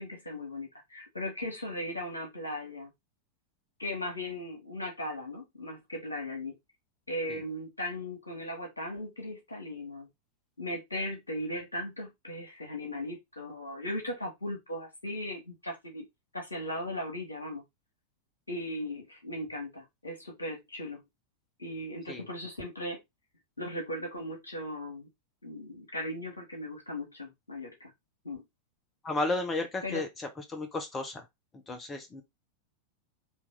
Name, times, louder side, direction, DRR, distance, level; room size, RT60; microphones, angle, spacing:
voice 1, 0.0-2.9 3.8-6.6 7.1-10.1 10.6-16.0 16.3-17.6 18.5-21.0 21.6-23.0 23.6-25.1 25.4-27.9 28.2-28.4 29.8-30.0, left 1 dB, 80° left, 1.7 m, -37 dB
voice 2, 29.0-30.1 30.5-31.2 31.7-32.2, left 2 dB, 20° left, 0.9 m, -32 dB
4.5 x 2.8 x 3.8 m
figure-of-eight pair, 90°, 0 cm